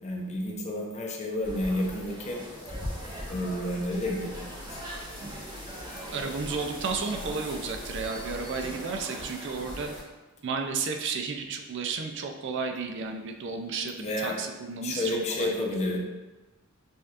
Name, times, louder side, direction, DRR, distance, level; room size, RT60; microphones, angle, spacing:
voice 1, 0.0-2.4 3.3-4.4 4.7-4.8 6.2-6.3 14.0-14.4 14.8-16.0, left 1 dB, 35° left, -1 dB, 0.7 m, -30 dB
sound 1, 1.4-10.0, equal, 20° right, 1.2 m, -40 dB
sound 2, 3.2-8.7, left 1 dB, 65° left, 0.8 m, -46 dB
voice 2, 6.1-9.9 10.4-15.7, right 4 dB, 60° right, 4 dB, 0.4 m, -33 dB
6.4 x 2.8 x 2.5 m, 1.1 s
head